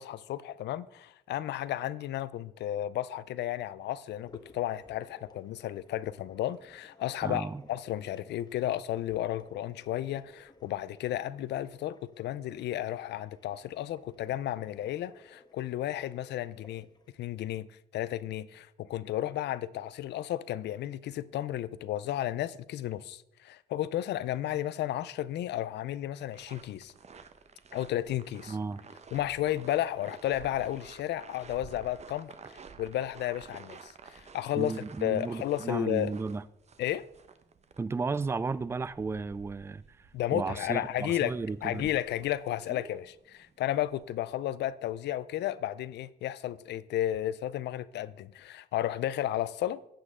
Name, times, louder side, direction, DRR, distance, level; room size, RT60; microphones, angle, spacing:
voice 1, 0.0-16.9 17.2-17.7 17.9-26.9 27.7-28.6 29.1-32.3 32.8-34.7 35.0-36.1 36.8-37.0 40.1-41.3 41.6-49.8, left 13 dB, 85° left, 0.4 m, -33 dB
sound 1, 4.1-17.2, left 2 dB, 25° left, 1.0 m, -58 dB
voice 2, 7.2-7.6 28.5-28.8 34.6-36.4 37.8-40.1 40.3-41.9, right 4 dB, 15° right, 0.3 m, -34 dB
sound 2, 26.2-44.2, right 5 dB, 40° right, 0.8 m, -52 dB
11.5 x 7.6 x 3.6 m
cardioid pair, 90°, 17 cm